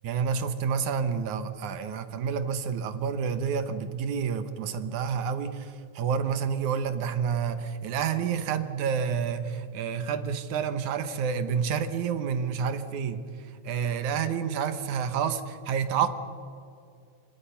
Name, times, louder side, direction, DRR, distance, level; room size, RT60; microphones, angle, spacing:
voice 1, 0.0-13.2 13.6-16.1, right 7 dB, 75° right, 10 dB, 2.5 m, -29 dB
28.0 x 25.0 x 5.7 m, 2.5 s
omnidirectional pair, 3.6 m